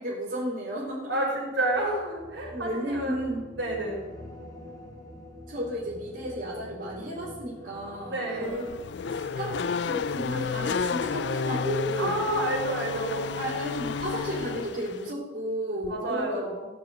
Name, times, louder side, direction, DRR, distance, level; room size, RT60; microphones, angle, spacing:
voice 1, 0.0-1.2 2.5-3.5 5.5-8.6 9.1-12.2 13.4-16.4, right 1 dB, 50° right, -8 dB, 4.3 m, -33 dB
voice 2, 1.0-3.2 3.6-4.0 8.0-8.6 11.9-13.3 15.8-16.7, right 1 dB, 70° right, -4 dB, 5.7 m, -30 dB
sound 1, 1.7-11.1 11.4-11.7, left 1 dB, 20° left, 3.0 m, -47 dB
Race car auto racing / Accelerating revving vroom, 8.4-15.1, left 5 dB, 60° left, 0.4 m, -31 dB
16.0 x 6.9 x 8.0 m, 1.2 s
head